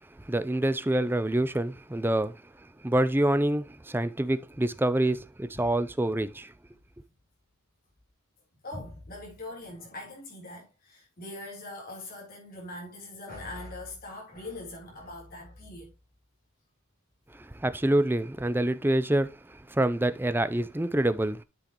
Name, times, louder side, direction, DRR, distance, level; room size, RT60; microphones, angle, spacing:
voice 1, 0.2-2.4 2.8-6.5 17.3-21.4, right 1 dB, 10° right, 0.5 m, -26 dB
voice 2, 8.6-15.9, left 2 dB, 40° left, 3.8 m, -42 dB
10.0 x 6.2 x 3.0 m
head